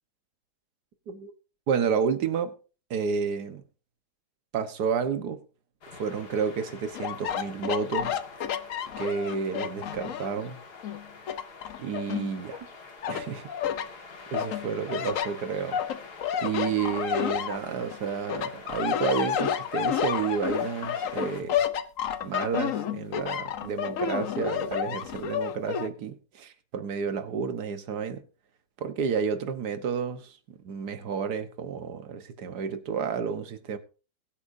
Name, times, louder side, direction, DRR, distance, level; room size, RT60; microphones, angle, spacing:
voice 1, 1.7-2.5 2.9-3.6 4.5-5.4 6.0-8.1 9.0-10.6 11.8-12.7 13.1-13.5 13.8-13.9 14.3-15.8 16.4-21.6 22.2-28.2 28.8-33.8, right 6 dB, 85° right, 1.7 m, -30 dB
sound 1, 5.8-21.4, left 4 dB, 85° left, 2.4 m, -46 dB
sound 2, 6.9-10.4 10.8-12.6 13.0-13.9 14.3-18.0 18.3-25.9, left 9 dB, 60° left, 1.1 m, -30 dB
21.0 x 8.8 x 2.7 m
omnidirectional pair, 1.7 m